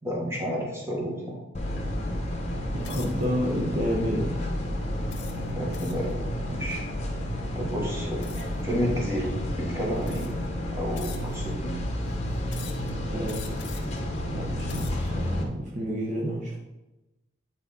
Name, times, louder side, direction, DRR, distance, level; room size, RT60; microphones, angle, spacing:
voice 1, 0.0-1.4 5.5-6.1 6.5-6.8 7.5-8.2 8.6-10.3 10.8-11.8, equal, 15° right, -3 dB, 1.5 m, -30 dB
sound 1, 1.5-15.4, left 1 dB, 35° left, 1.1 m, -31 dB
voice 2, 2.7-4.4 13.1-13.7 14.2-16.6, equal, 40° right, -3 dB, 0.9 m, -30 dB
sound 2, 2.8-3.3 3.9-4.2 5.1-6.1 8.2-8.6 9.5-9.6 10.0-10.5 11.0-11.5 12.5-12.9 13.3-14.0 14.5-15.1, left 9 dB, 60° left, 0.9 m, -45 dB
9.3 x 4.1 x 4.0 m, 1.0 s
head